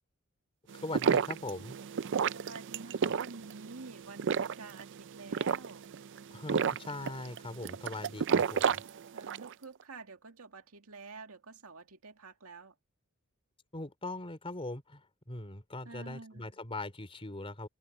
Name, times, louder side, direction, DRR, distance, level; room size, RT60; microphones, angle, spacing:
voice 1, 0.7-1.8 6.3-8.8 13.7-15.0 15.3-17.7, left 2 dB, 25° left, 3.7 m, -41 dB
sound 1, 0.7-9.5, right 6 dB, 60° right, 0.5 m, -32 dB
voice 2, 2.3-5.8 9.1-12.7 15.8-16.6, right 3 dB, 85° right, 2.2 m, -49 dB
head